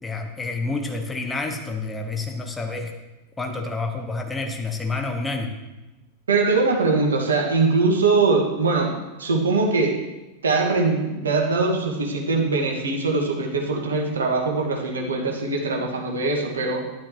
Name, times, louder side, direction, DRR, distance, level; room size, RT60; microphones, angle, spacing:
voice 1, 0.0-2.9 3.4-5.5, left 3 dB, 10° left, 4 dB, 1.1 m, -29 dB
voice 2, 6.3-8.9 9.2-9.9 10.4-16.8, right 3 dB, 70° right, 1 dB, 1.8 m, -22 dB
11.5 x 10.0 x 3.0 m, 1.1 s
figure-of-eight pair, 90°, 0 cm